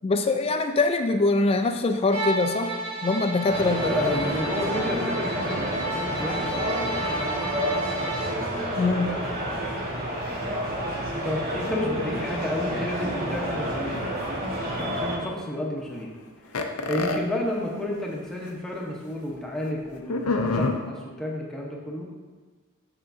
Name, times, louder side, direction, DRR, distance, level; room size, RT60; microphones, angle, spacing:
voice 1, 0.0-2.7 3.0-4.3 8.8-9.2, left 3 dB, 25° left, 7 dB, 0.3 m, -23 dB
Bowed string instrument, 2.1-8.3, right 1 dB, 70° right, 1.9 m, -32 dB
sound 1, 3.5-15.2, equal, 45° right, 1.2 m, -29 dB
voice 2, 3.8-6.5 8.2-9.4 11.0-14.2 14.6-16.2 16.5-22.1, left 1 dB, ahead, -3 dB, 0.9 m, -32 dB
sound 2, 16.5-17.2 18.1-18.2 18.5-18.6 20.1-20.7, left 3 dB, 90° left, 0.6 m, -25 dB
6.9 x 5.9 x 2.6 m, 1.4 s
head